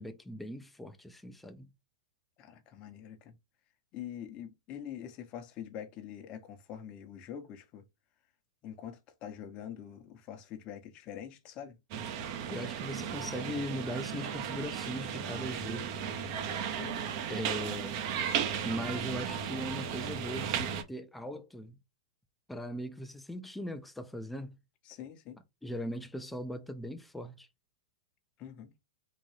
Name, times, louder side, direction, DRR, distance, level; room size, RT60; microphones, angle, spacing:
voice 1, 0.0-1.7 12.5-15.9 17.3-18.0 18.6-21.8 22.5-24.6 25.6-27.5, equal, 5° left, 0.6 m, -39 dB
voice 2, 2.4-3.3 3.9-7.8 8.6-11.8 16.7-17.1 24.8-25.4 28.4-28.7, left 9 dB, 35° left, 1.0 m, -45 dB
sound 1, 11.9-20.8, right 8 dB, 50° right, 0.9 m, -35 dB
3.9 x 2.6 x 3.2 m
hypercardioid pair, 125°, 3 cm